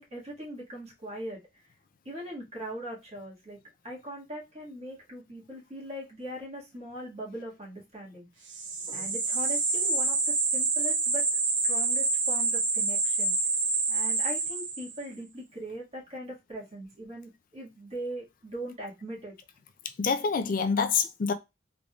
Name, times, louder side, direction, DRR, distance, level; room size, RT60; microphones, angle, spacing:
voice 1, 0.0-1.4 2.1-8.3 8.9-13.3 13.9-19.3, equal, 35° right, 1.7 m, -40 dB
sound 1, 8.5-15.0, right 3 dB, 75° right, 1.3 m, -27 dB
voice 2, 20.0-21.3, left 5 dB, 50° left, 0.4 m, -27 dB
3.8 x 3.5 x 2.3 m
head